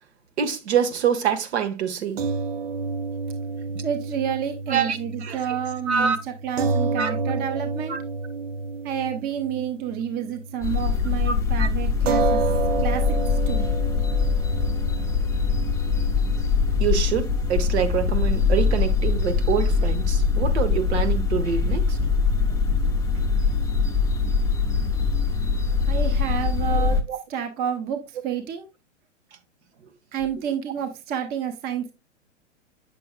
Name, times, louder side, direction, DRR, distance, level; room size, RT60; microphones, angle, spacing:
voice 1, 0.4-2.2 4.7-5.6 5.9-6.2 7.0-7.1 7.9-8.0 11.3-11.7 16.8-22.1 22.7-22.8 26.8-27.2, right 7 dB, 60° right, 1.3 m, -26 dB
sound 1, 2.2-10.7 11.0-11.2 12.1-18.6, right 4 dB, 80° right, 0.8 m, -30 dB
voice 2, 3.7-8.0 8.8-12.4 12.8-13.0 13.5-13.6 25.9-27.0 27.3-28.7 30.1-31.9, right 8 dB, 25° right, 0.9 m, -29 dB
sound 2, 10.6-27.0, left 5 dB, 10° left, 0.7 m, -23 dB
8.3 x 6.8 x 2.3 m
hypercardioid pair, 115°, 37 cm